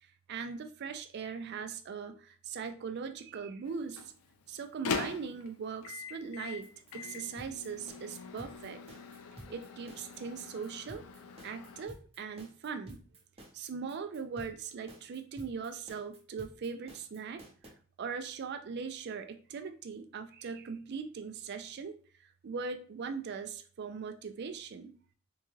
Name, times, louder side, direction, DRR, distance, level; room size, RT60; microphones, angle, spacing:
voice 1, 0.0-4.1 4.5-8.8 9.5-11.0 11.4-13.0 13.5-17.4 18.0-25.0, right 5 dB, 50° right, 8 dB, 0.4 m, -40 dB
Microwave oven, 3.7-11.9, left 5 dB, 85° left, 0.4 m, -42 dB
sound 1, 6.4-17.7, right 1 dB, 30° right, 0.9 m, -52 dB
3.6 x 2.2 x 3.1 m, 0.41 s
head